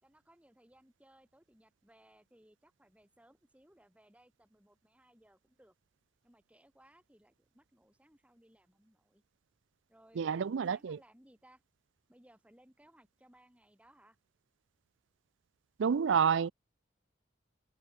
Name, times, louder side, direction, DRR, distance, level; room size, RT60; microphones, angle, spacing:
voice 1, 0.0-5.7 6.2-9.2 9.9-11.6 12.1-14.2, right 1 dB, 5° right, 4.7 m, -64 dB
voice 2, 10.2-11.0 15.8-16.5, right 7 dB, 65° right, 0.4 m, -29 dB
head